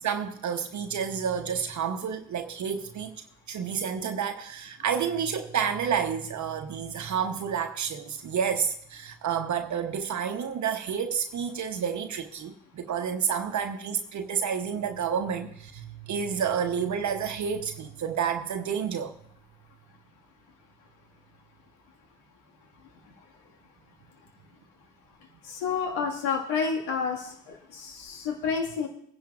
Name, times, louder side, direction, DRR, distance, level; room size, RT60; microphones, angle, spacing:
voice 1, 0.0-3.2 3.5-19.1, right 7 dB, 50° right, 1.0 m, -30 dB
voice 2, 25.5-28.9, left 5 dB, 75° left, 2.0 m, -30 dB
22.0 x 10.5 x 2.5 m
hypercardioid pair, 50°, 37 cm